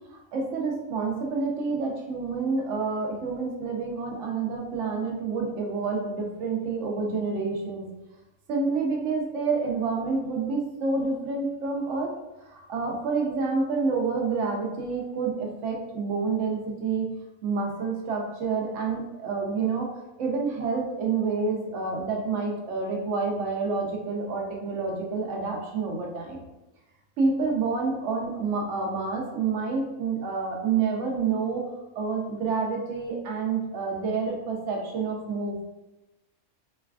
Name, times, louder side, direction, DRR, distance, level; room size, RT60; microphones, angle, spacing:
voice 1, 0.3-7.8 8.5-12.1 12.4-17.1 17.4-19.9 20.2-26.4 27.2-31.6 31.9-35.6, right 4 dB, 65° right, 0 dB, 0.9 m, -28 dB
3.2 x 2.2 x 2.3 m, 0.99 s
omnidirectional pair, 1.5 m